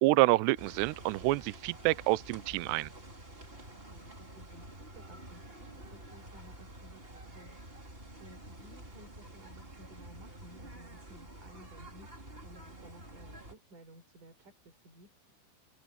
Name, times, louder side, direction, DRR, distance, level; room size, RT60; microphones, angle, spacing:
voice 1, 0.0-2.9, right 20 dB, 90° right, 2.4 m, -27 dB
sound 1, 0.6-13.5, right 1 dB, 15° right, 2.9 m, -49 dB
voice 2, 3.5-15.1, right 1 dB, 40° right, 6.3 m, -57 dB
omnidirectional pair, 5.7 m